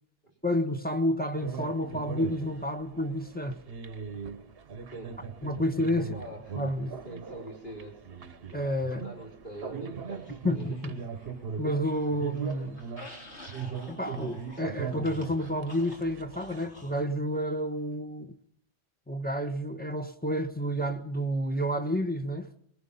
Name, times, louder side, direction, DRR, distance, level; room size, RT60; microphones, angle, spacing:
voice 1, 0.4-3.6 5.4-6.1 6.6-6.9 8.5-9.0 10.4-11.0 11.6-12.8 13.9-18.3 19.1-22.5, equal, 10° left, 1.3 m, -30 dB
sound 1, 1.4-16.7, right 6 dB, 55° right, 1.1 m, -40 dB
voice 2, 6.0-6.6 7.0-8.2 8.9-10.8 11.1-11.2, right 1 dB, 40° left, 5.2 m, -44 dB
sound 2, 10.1-11.4 11.7-17.1, left 1 dB, 60° left, 4.0 m, -50 dB
24.0 x 21.0 x 5.5 m
omnidirectional pair, 1.3 m